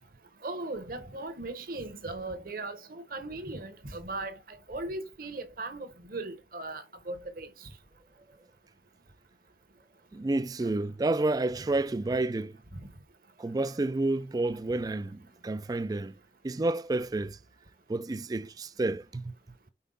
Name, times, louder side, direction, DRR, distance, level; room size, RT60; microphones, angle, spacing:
voice 1, 0.4-7.5, right 2 dB, 50° right, 1.1 m, -38 dB
voice 2, 10.1-12.6 13.4-16.1 16.4-17.4 17.9-19.3, right 2 dB, 20° right, 0.3 m, -30 dB
5.5 x 4.5 x 3.8 m
head